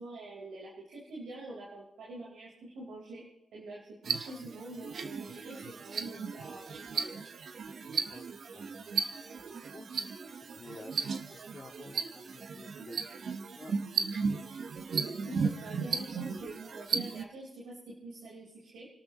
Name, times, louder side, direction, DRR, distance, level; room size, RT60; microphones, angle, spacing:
voice 1, 0.0-3.2 3.5-7.1 15.0-18.9, right 2 dB, 85° right, -3 dB, 4.2 m, -46 dB
sound 1, 4.0-17.2, right 5 dB, 65° right, 1.1 m, -36 dB
voice 2, 7.8-13.7, left 3 dB, 35° left, -2 dB, 2.4 m, -53 dB
29.5 x 12.5 x 3.0 m, 0.92 s
supercardioid pair, 55°, 0 cm